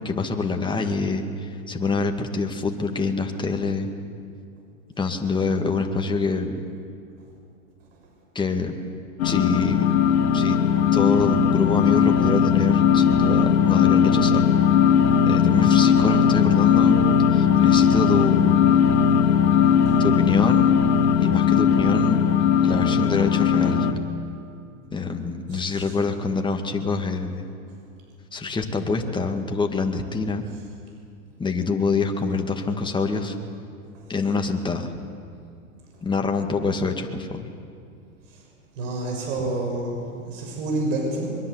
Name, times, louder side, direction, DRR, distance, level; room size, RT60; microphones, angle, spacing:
voice 1, 0.0-3.9 5.0-6.6 8.3-8.8 9.2-10.0 10.3-10.6 10.9-14.5 15.3-17.0 17.3-18.7 20.0-20.8 21.2-22.2 22.6-23.9 24.9-27.5 28.3-30.4 31.4-33.4 34.1-34.9 36.0-37.4, left 4 dB, 10° left, 4 dB, 2.1 m, -25 dB
sound 1, 9.2-23.9, left 7 dB, 60° left, 2.5 m, -18 dB
voice 2, 25.5-25.9 33.9-34.0 38.3-38.4 38.8-41.4, right 2 dB, 60° right, 0 dB, 6.5 m, -29 dB
23.5 x 22.5 x 8.0 m, 2.4 s
hypercardioid pair, 115°, 44 cm